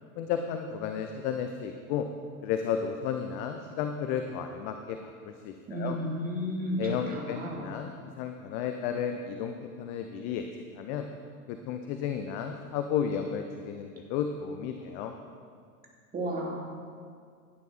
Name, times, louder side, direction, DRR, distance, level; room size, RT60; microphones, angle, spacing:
voice 1, 0.2-2.1 2.4-6.0 6.8-10.4 10.8-11.1 11.5-15.1, left 8 dB, 20° left, 6 dB, 0.4 m, -33 dB
voice 2, 5.7-6.8 7.1-7.7 16.1-16.5, equal, 20° right, -3 dB, 3.2 m, -33 dB
16.5 x 11.5 x 4.2 m, 2.1 s
figure-of-eight pair, 90°, 47 cm